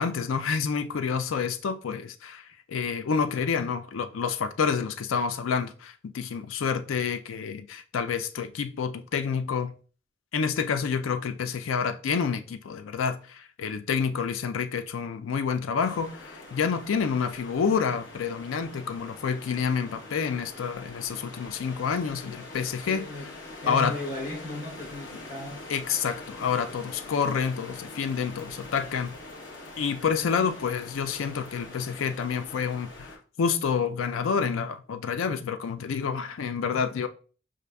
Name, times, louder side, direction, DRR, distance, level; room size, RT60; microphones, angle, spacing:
voice 1, 0.0-9.7 10.3-23.3 23.7-24.0 25.7-29.1 29.8-37.1, left 6 dB, 85° left, 0.4 m, -28 dB
sound 1, 15.8-33.2, left 2 dB, 65° left, 0.9 m, -44 dB
voice 2, 22.9-23.3 23.6-25.7, left 2 dB, 45° left, 1.0 m, -36 dB
6.4 x 2.5 x 2.3 m
head